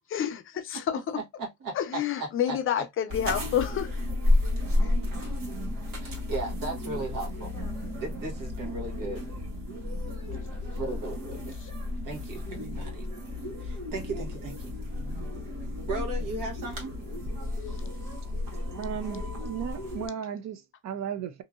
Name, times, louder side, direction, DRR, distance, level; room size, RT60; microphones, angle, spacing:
voice 1, 0.1-1.2 1.7-3.9 4.8-4.9 11.6-11.7, left 10 dB, 40° left, 0.4 m, -29 dB
voice 2, 1.1-2.8 6.0-7.5 8.0-9.2 10.8-11.6 12.0-13.1 13.6-14.7 15.9-17.0, right 3 dB, 70° right, 1.2 m, -36 dB
sound 1, 3.1-20.1, left 2 dB, 90° right, 1.4 m, -32 dB
voice 3, 18.8-21.4, right 8 dB, 55° right, 0.5 m, -35 dB
2.8 x 2.6 x 2.3 m
cardioid pair, 140°, 33 cm